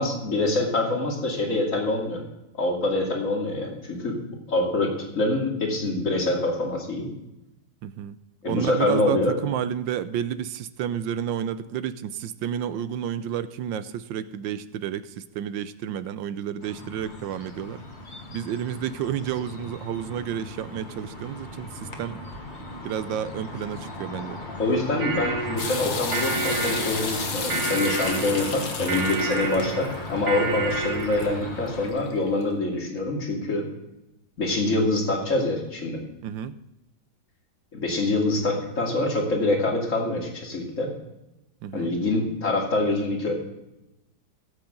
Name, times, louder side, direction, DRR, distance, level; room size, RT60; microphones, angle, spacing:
voice 1, 0.0-2.2 2.6-4.9 5.1-7.1 8.4-9.3 24.6-33.7 34.4-36.0 37.7-40.9 41.7-43.3, left 2 dB, 40° left, -1 dB, 2.8 m, -25 dB
voice 2, 7.8-8.2 8.5-17.8 18.3-22.2 22.8-24.4 36.2-36.5 41.6-41.9, right 9 dB, 80° right, 13 dB, 1.3 m, -30 dB
sound 1, 16.6-31.9, left 2 dB, 25° left, 1.5 m, -37 dB
sound 2, 25.0-31.4, right 4 dB, 55° right, 1.7 m, -30 dB
sound 3, 25.6-32.4, left 5 dB, 85° left, 2.3 m, -34 dB
17.0 x 8.3 x 3.8 m, 0.93 s
omnidirectional pair, 2.1 m